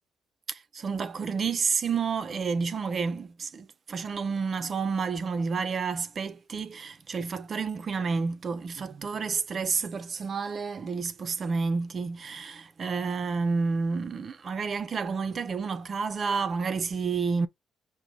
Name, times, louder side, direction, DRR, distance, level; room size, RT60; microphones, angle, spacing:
voice 1, 0.5-17.5, right 5 dB, 45° right, 0.4 m, -30 dB
3.9 x 2.1 x 4.3 m
cardioid pair, 90°, 0 cm